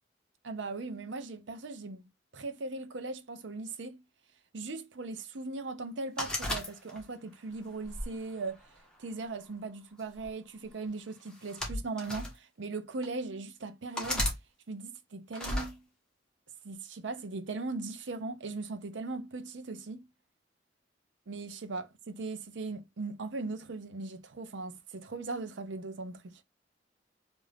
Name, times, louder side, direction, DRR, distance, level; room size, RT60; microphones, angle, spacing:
voice 1, 0.4-2.0 2.3-4.0 4.5-8.6 9.0-14.3 14.7-15.8 16.6-20.0 21.3-26.4, right 3 dB, 90° right, 0.6 m, -39 dB
sound 1, 6.2-7.2 7.9-9.0 10.0-10.3 11.3-12.3 13.0-13.1 14.0-14.4 15.3-15.7, left 1 dB, 5° left, 1.2 m, -34 dB
3.6 x 2.6 x 3.3 m
head